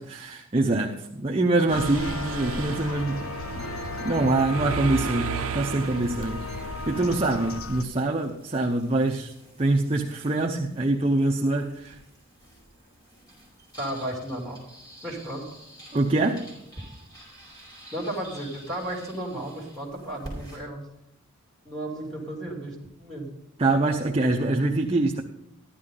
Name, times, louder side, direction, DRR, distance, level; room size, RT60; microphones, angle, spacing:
voice 1, 0.0-3.3 4.0-6.5 6.9-9.3 9.6-12.0 15.9-16.5 23.6-25.2, right 2 dB, 25° right, 0.7 m, -24 dB
sound 1, 1.7-7.8, left 3 dB, 80° left, 0.6 m, -35 dB
Mechanisms, 1.7-7.6, right 7 dB, 75° right, 0.4 m, -35 dB
sound 2, 2.7-20.6, right 1 dB, 20° left, 4.9 m, -50 dB
voice 2, 13.8-14.6 15.0-15.4 17.9-20.9 21.6-23.3, right 1 dB, ahead, 3.0 m, -34 dB
15.0 x 11.5 x 3.8 m
head